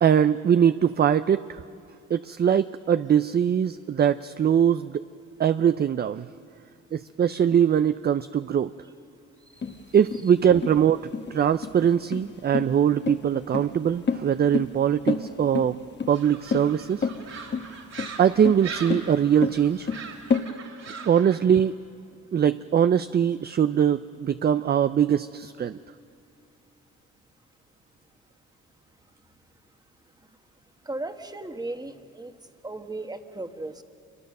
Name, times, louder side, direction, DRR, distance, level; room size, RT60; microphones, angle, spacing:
voice 1, 0.0-1.6 2.1-5.0 5.4-6.3 6.9-8.7 9.9-15.8 16.1-17.1 18.2-19.9 21.1-21.7 22.3-25.8, right 8 dB, 35° right, 13 dB, 0.5 m, -22 dB
voice 2, 9.5-10.0 30.8-32.3 32.6-33.8, right 2 dB, 15° right, 7 dB, 1.5 m, -36 dB
sound 1, 9.6-20.5, left 5 dB, 35° left, 1.3 m, -30 dB
sound 2, 16.1-21.4, right 5 dB, 60° right, 3.4 m, -41 dB
27.0 x 22.5 x 6.6 m, 2.4 s
cardioid pair, 90°, 30 cm